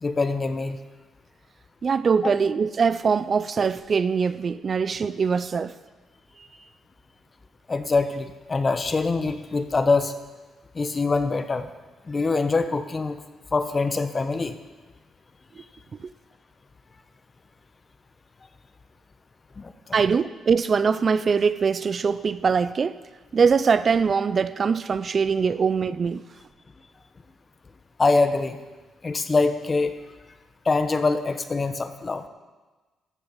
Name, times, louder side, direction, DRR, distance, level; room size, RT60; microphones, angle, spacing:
voice 1, 0.0-0.8 2.2-2.4 7.7-10.1 10.7-11.7 12.1-13.2 13.5-14.5 19.6-20.0 28.0-28.6 29.0-29.9 30.6-32.2, left 3 dB, 30° left, 0.8 m, -24 dB
voice 2, 1.8-5.7 19.9-23.0 23.3-26.2, right 5 dB, 45° right, 0.4 m, -22 dB
14.5 x 7.1 x 5.5 m
cardioid pair, 90°, 0 cm